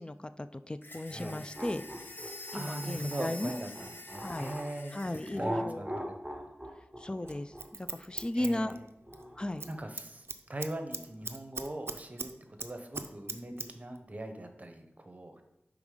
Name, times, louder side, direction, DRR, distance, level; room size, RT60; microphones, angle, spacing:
voice 1, 0.0-1.9 2.5-3.5 4.2-4.6 4.9-5.9 7.0-8.8 9.4-9.7, left 1 dB, 20° left, 11 dB, 0.3 m, -36 dB
sound 1, 0.8-5.4, left 2 dB, 50° left, 0.8 m, -46 dB
sound 2, 1.1-4.7 5.3-9.8, equal, 10° right, 1.0 m, -40 dB
voice 2, 2.5-6.1 8.1-8.8 9.7-12.3 12.6-15.4, right 1 dB, 35° right, 6 dB, 0.8 m, -41 dB
Scissors, 7.3-9.2 9.5-9.7 10.0-12.3 12.6-13.7 14.0-14.1, right 3 dB, 65° right, 0.4 m, -39 dB
5.3 x 3.5 x 4.9 m, 0.86 s
wide cardioid pair, 55°, 4 cm